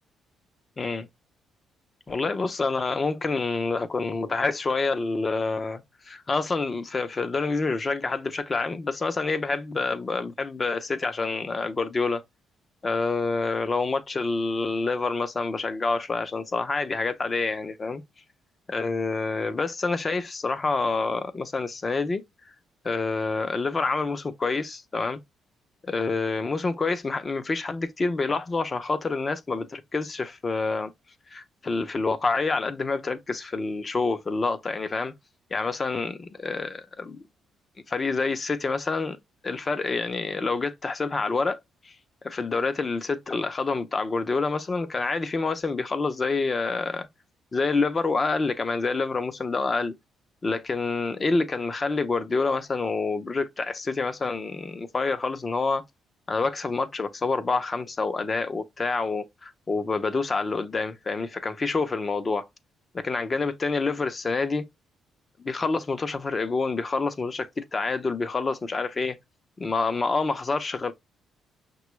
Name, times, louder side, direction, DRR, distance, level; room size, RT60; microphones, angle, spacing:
voice 1, 0.8-1.1 2.1-12.2 12.8-18.0 18.7-22.2 22.8-25.2 25.8-30.9 31.3-35.1 35.5-37.2 37.9-39.2 39.4-41.6 41.8-41.9 42.2-47.1 47.5-50.0 50.4-55.8 56.3-62.5 62.9-64.7 65.4-69.2 69.6-70.9, left 3 dB, 30° left, 0.6 m, -27 dB
5.9 x 2.3 x 3.1 m
cardioid pair, 90°, 0 cm